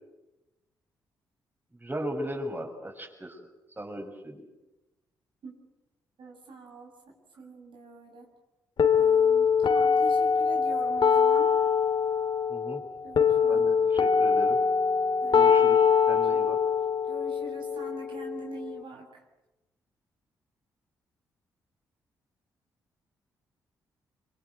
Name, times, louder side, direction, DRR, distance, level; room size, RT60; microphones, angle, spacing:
voice 1, 1.8-3.4 3.8-4.5 12.5-12.8 13.5-14.6 15.3-16.6, equal, 20° right, 3 dB, 6.8 m, -37 dB
voice 2, 6.2-8.3 9.0-11.5 13.0-13.6 15.2-15.5 16.3-16.4 17.0-19.2, right 2 dB, 65° right, 1 dB, 6.5 m, -44 dB
sound 1, 8.8-18.8, left 6 dB, 55° left, 2.9 m, -23 dB
27.0 x 23.5 x 8.2 m, 1.0 s
hypercardioid pair, 45°, 9 cm